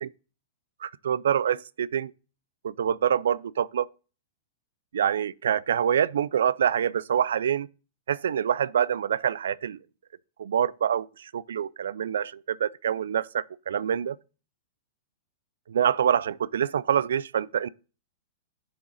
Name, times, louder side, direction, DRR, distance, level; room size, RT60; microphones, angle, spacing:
voice 1, 0.8-2.1 2.6-3.9 4.9-7.7 8.1-9.8 10.4-14.2 15.7-17.7, right 9 dB, 80° right, 0.3 m, -26 dB
7.0 x 3.7 x 6.2 m
hypercardioid pair, 130°, 0 cm